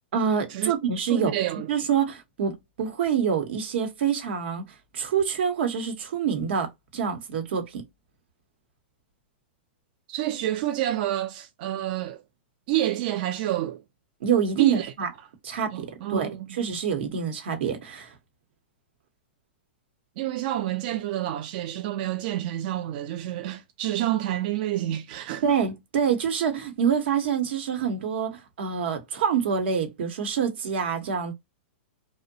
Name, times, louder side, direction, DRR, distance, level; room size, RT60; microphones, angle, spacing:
voice 1, 0.1-1.3 1.7-4.7 4.9-7.8 14.2-15.1 15.4-18.1 25.4-31.3, right 7 dB, 70° right, 0.9 m, -26 dB
voice 2, 1.1-1.7 10.1-12.2 12.7-13.8 14.6-14.9 15.7-16.5 20.2-25.4, right 13 dB, 50° right, 0.3 m, -28 dB
2.7 x 2.1 x 2.6 m
hypercardioid pair, 140°, 6 cm